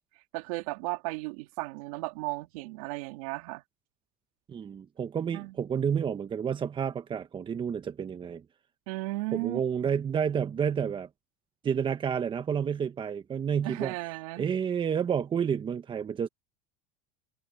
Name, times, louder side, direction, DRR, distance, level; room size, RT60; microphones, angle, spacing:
voice 1, 0.3-3.6 5.3-5.5 8.9-9.9 13.6-14.5, right 23 dB, 75° right, 3.2 m, -35 dB
voice 2, 4.5-8.4 9.3-11.1 11.6-13.9 14.4-16.3, right 7 dB, 25° right, 1.3 m, -30 dB
supercardioid pair, 115°, 18 cm